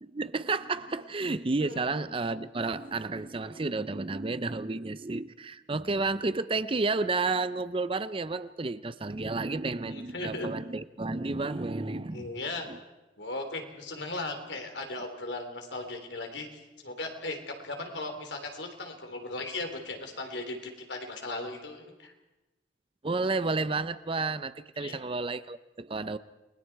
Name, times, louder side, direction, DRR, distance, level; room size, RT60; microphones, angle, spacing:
voice 1, 0.0-12.3 12.7-12.8 23.0-26.2, right 3 dB, 30° right, 14 dB, 0.6 m, -31 dB
voice 2, 1.3-1.8 9.9-10.5 12.1-12.7 13.2-16.5 16.8-22.1 24.8-25.0, left 2 dB, 90° left, 4 dB, 3.3 m, -37 dB
29.5 x 20.5 x 4.7 m, 1.1 s
head